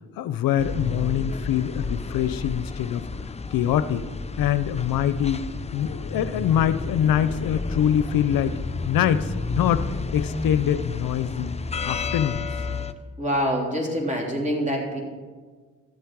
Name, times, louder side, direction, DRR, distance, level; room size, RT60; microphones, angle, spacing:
voice 1, 0.2-3.1 3.5-4.1 4.4-5.4 5.7-8.6 8.8-9.9 10.1-11.6 11.8-12.5, left 10 dB, 80° left, 12 dB, 0.6 m, -24 dB
sound 1, 0.6-12.9, left 4 dB, 20° left, 0.6 m, -31 dB
voice 2, 13.2-15.0, equal, 20° right, -1 dB, 3.5 m, -25 dB
13.5 x 8.0 x 4.7 m, 1.5 s
supercardioid pair, 60°, 34 cm